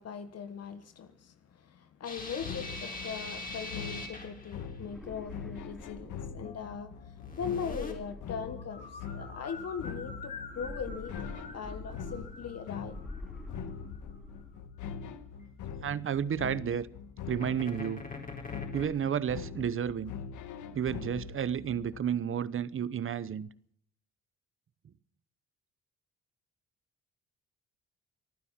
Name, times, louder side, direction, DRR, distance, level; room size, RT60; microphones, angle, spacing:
voice 1, 0.0-11.1 11.5-12.9, left 6 dB, 55° left, 1.4 m, -40 dB
sound 1, 2.0-4.7 6.4-6.8 7.2-7.9 8.5-14.2 17.4-18.9, left 3 dB, 30° left, 4.3 m, -44 dB
sound 2, 2.2-22.0, left 6 dB, 75° left, 1.7 m, -43 dB
sound 3, 4.8-6.7 7.5-9.0 10.4-12.6 12.9-14.6, left 1 dB, ahead, 3.3 m, -46 dB
voice 2, 15.8-16.9 17.3-18.0 18.7-20.1 20.7-23.5, right 8 dB, 45° right, 0.9 m, -31 dB
25.5 x 9.7 x 5.8 m
cardioid pair, 90°, 30 cm